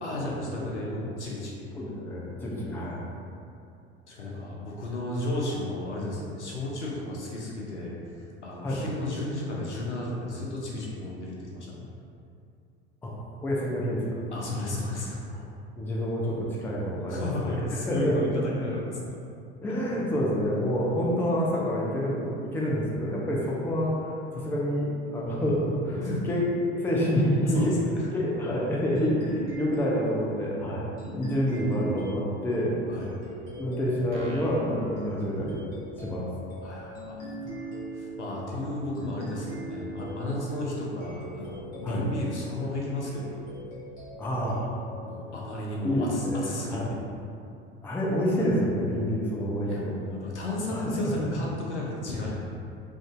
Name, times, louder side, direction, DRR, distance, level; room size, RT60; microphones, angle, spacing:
voice 1, 0.0-1.7 4.1-11.9 14.3-15.2 17.1-19.2 26.0-26.2 27.5-28.1 32.9-33.2 36.6-43.6 45.0-47.0 49.7-52.5, left 2 dB, 85° left, -4 dB, 0.6 m, -34 dB
voice 2, 1.7-3.1 8.6-8.8 13.0-13.1 13.4-14.2 15.3-15.4 15.8-17.3 17.9-18.3 19.6-23.9 24.4-26.5 26.7-27.7 28.1-33.0 33.6-35.6 36.0-36.3 38.5-38.7 41.8-42.1 44.2-44.7 45.8-46.9 47.8-50.0 50.7-50.8 51.2-51.3, equal, 5° left, -5 dB, 0.4 m, -28 dB
sound 1, 29.0-46.1, right 2 dB, 55° left, 1.3 m, -41 dB
sound 2, 34.1-36.0, equal, 55° right, 0.6 m, -45 dB
3.5 x 2.5 x 2.5 m, 2.5 s
figure-of-eight pair, 70°, 34 cm